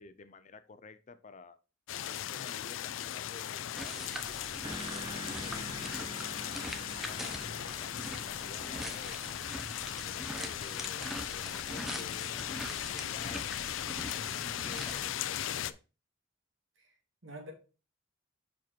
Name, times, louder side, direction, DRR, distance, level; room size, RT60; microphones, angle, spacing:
voice 1, 0.0-1.6 2.1-4.2 4.7-6.5 7.0-9.2 10.0-12.3 12.7-13.4 13.7-15.8, left 4 dB, 40° left, 12 dB, 0.5 m, -52 dB
sound 1, 1.9-15.7, left 11 dB, 85° left, 0.4 m, -38 dB
sound 2, 3.7-15.1, equal, ahead, 0.7 m, -43 dB
sound 3, 4.6-12.4, right 1 dB, 25° right, 1.5 m, -48 dB
voice 2, 12.8-13.2 16.8-16.9 17.2-17.5, right 1 dB, 85° right, 1 dB, 2.3 m, -48 dB
5.7 x 4.9 x 4.4 m, 0.32 s
head